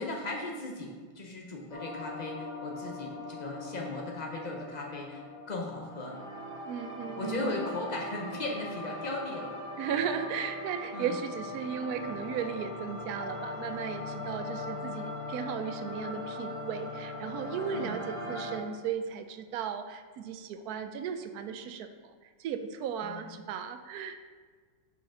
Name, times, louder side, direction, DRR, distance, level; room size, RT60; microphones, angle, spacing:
voice 1, 0.0-6.2 7.2-9.6 10.9-11.2 17.7-18.0 23.0-23.2, left 2 dB, 90° left, 0 dB, 0.3 m, -37 dB
sound 1, 1.7-18.6, left 1 dB, 15° left, 1.9 m, -40 dB
voice 2, 6.7-7.6 9.8-24.2, right 7 dB, 70° right, 9 dB, 0.9 m, -36 dB
6.4 x 5.8 x 5.6 m, 1.6 s
omnidirectional pair, 2.1 m